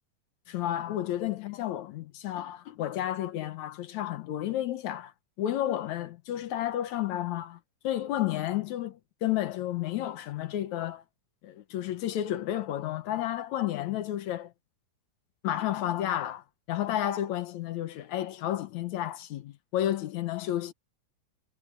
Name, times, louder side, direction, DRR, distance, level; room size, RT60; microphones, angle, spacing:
voice 1, 0.5-5.1 5.4-7.6 7.8-11.0 11.4-14.5 15.4-20.7, left 12 dB, 70° left, 2.1 m, -31 dB
omnidirectional pair, 3.7 m